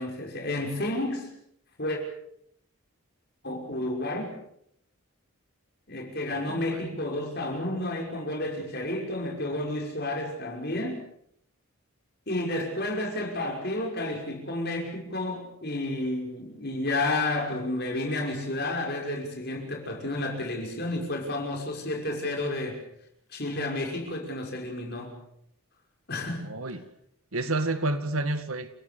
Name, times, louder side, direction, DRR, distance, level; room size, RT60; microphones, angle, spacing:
voice 1, 0.0-1.3 1.8-2.0 3.4-4.4 5.9-11.0 12.3-22.8 23.3-25.2 26.1-26.5, left 1 dB, 45° left, 5.8 m, -31 dB
voice 2, 6.5-7.0 26.4-26.8 27.3-28.7, right 2 dB, 75° right, 2.0 m, -30 dB
29.5 x 17.5 x 6.9 m
head